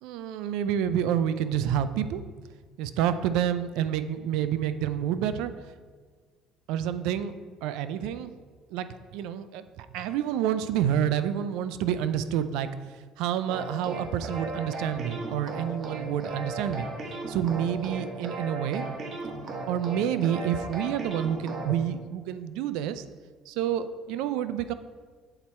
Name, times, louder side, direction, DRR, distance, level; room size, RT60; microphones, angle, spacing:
voice 1, 0.0-2.2 2.8-5.5 6.7-7.4 7.6-8.3 8.7-12.7 13.2-16.9 17.3-18.9 19.7-23.0 23.5-24.7, right 9 dB, 80° right, 12 dB, 0.4 m, -28 dB
sound 1, 13.5-21.8, right 3 dB, 45° right, 1.2 m, -36 dB
7.9 x 4.2 x 4.4 m, 1.5 s
supercardioid pair, 90°, 0 cm